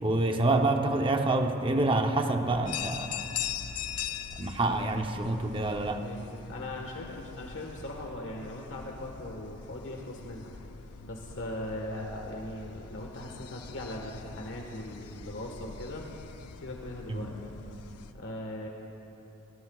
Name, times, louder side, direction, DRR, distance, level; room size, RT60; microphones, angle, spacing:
voice 1, 0.0-3.3 4.4-6.0 17.1-17.3, right 2 dB, 25° right, 5 dB, 0.7 m, -27 dB
sound 1, 2.7-18.1, left 8 dB, 80° left, 0.6 m, -42 dB
voice 2, 6.0-10.7 11.0-16.1 16.6-17.5 18.1-18.7, left 1 dB, 60° left, 0 dB, 1.4 m, -39 dB
24.5 x 17.5 x 2.4 m, 2.9 s
head